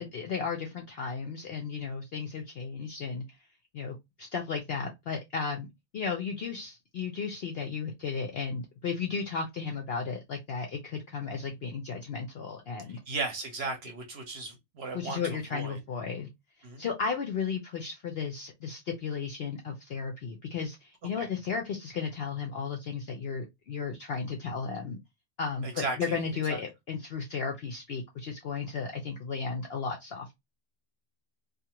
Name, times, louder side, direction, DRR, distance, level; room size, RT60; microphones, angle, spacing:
voice 1, 0.0-3.2 3.7-5.7 5.9-13.0 14.9-16.3 16.8-25.0 25.4-30.3, left 5 dB, 65° left, 0.6 m, -34 dB
voice 2, 13.1-15.8 16.6-16.8 21.2-21.3 25.6-26.2 26.5-26.6, right 3 dB, 55° right, 0.8 m, -36 dB
2.4 x 2.4 x 2.8 m
omnidirectional pair, 1.5 m